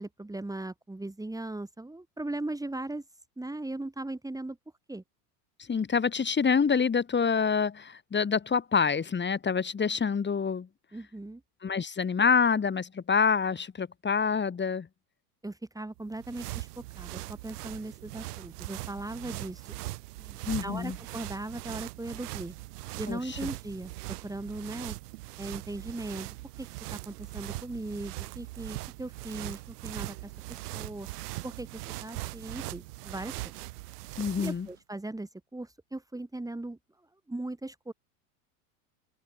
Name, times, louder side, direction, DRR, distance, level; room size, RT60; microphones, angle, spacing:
voice 1, 0.0-3.0 3.4-4.6 4.9-5.0 10.9-11.4 15.4-19.8 20.2-22.5 23.0-24.9 25.4-26.3 26.6-31.1 31.4-33.4 34.4-37.9, right 2 dB, 5° right, 4.4 m, -38 dB
voice 2, 5.7-10.7 11.6-14.9 20.4-21.0 23.1-23.4 34.2-34.7, left 6 dB, 25° left, 4.4 m, -27 dB
sound 1, 16.0-34.7, right 20 dB, 75° right, 1.9 m, -41 dB
hypercardioid pair, 95°, 47 cm